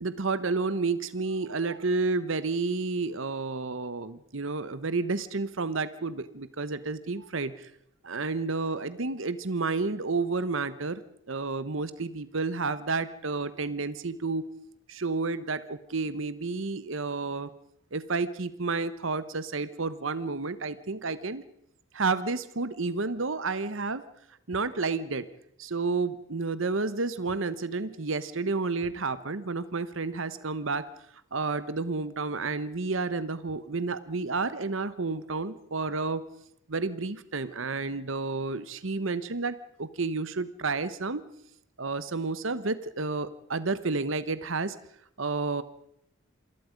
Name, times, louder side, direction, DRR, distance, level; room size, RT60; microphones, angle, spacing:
voice 1, 0.0-7.7 8.0-11.0 11.3-14.5 14.9-17.5 17.9-21.4 21.9-24.0 24.5-25.3 25.6-30.9 31.3-36.3 36.7-41.2 41.8-44.8 45.2-45.6, right 3 dB, 70° right, 14 dB, 1.0 m, -30 dB
27.5 x 21.0 x 5.2 m, 0.73 s
head